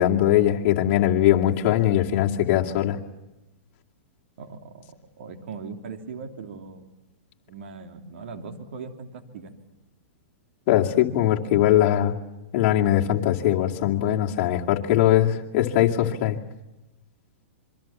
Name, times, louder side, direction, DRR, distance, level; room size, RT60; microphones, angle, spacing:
voice 1, 0.0-3.0 10.7-12.2 12.5-16.4, left 12 dB, 45° left, 0 dB, 2.4 m, -21 dB
voice 2, 4.4-4.9 5.2-6.8 7.5-9.5, right 5 dB, 70° right, 4 dB, 3.2 m, -39 dB
26.5 x 24.0 x 7.3 m, 1.0 s
hypercardioid pair, 135°, 7 cm